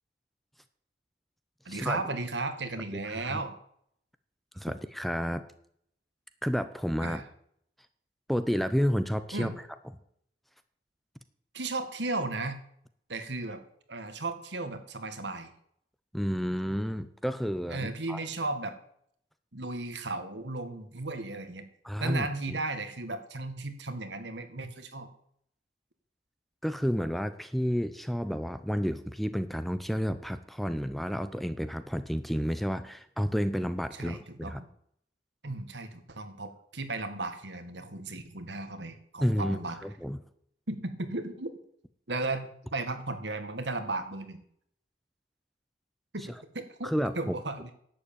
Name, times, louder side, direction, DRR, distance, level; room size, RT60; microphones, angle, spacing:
voice 1, 1.7-3.5 7.0-7.2 9.3-9.5 11.5-12.6 13.1-13.6 13.9-15.5 17.7-18.8 19.5-21.7 22.0-25.1 33.9-34.7 35.4-39.8 40.7-41.5 42.1-44.4 46.1-47.7, right 2 dB, 75° right, 8 dB, 1.8 m, -35 dB
voice 2, 2.9-3.4 4.5-5.4 6.4-7.2 8.3-9.5 16.1-18.2 21.8-22.6 26.6-34.6 39.2-40.2 46.8-47.3, equal, ahead, 11 dB, 0.7 m, -31 dB
11.5 x 8.0 x 8.7 m, 0.68 s
head